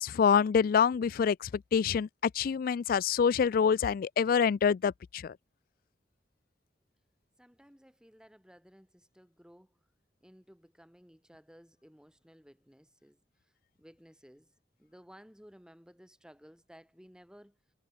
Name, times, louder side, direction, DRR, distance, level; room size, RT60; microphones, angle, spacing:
voice 1, 0.0-5.3, left 7 dB, 55° left, 0.3 m, -26 dB
voice 2, 7.4-9.7 10.2-13.2 13.4-13.5 13.8-14.5 14.8-17.5, equal, 5° right, 4.5 m, -57 dB
head